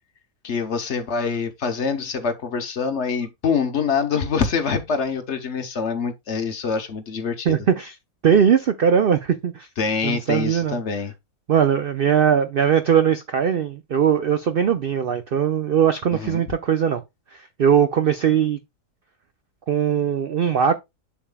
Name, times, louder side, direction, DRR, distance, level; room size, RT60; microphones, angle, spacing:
voice 1, 0.4-7.6 9.8-11.1 16.1-16.4, left 5 dB, 50° left, 1.1 m, -25 dB
voice 2, 7.5-7.9 8.2-9.7 10.0-10.8 11.5-17.0 17.3-18.6 19.7-20.7, right 8 dB, 80° right, 0.5 m, -20 dB
7.1 x 7.1 x 2.2 m
omnidirectional pair, 1.7 m